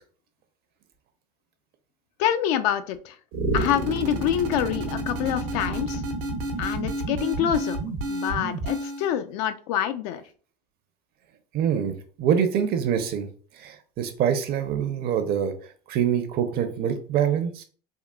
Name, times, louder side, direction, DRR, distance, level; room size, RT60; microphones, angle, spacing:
voice 1, 2.2-3.2 3.5-6.0 6.6-7.8 8.1-10.2, left 10 dB, 65° left, 10 dB, 0.4 m, -26 dB
sound 1, 3.3-9.1, right 2 dB, 75° right, 0.8 m, -30 dB
voice 2, 11.5-13.3 13.6-15.5 15.9-17.6, right 8 dB, 50° right, 8 dB, 0.6 m, -25 dB
3.7 x 2.3 x 2.2 m, 0.41 s
hypercardioid pair, 85°, 21 cm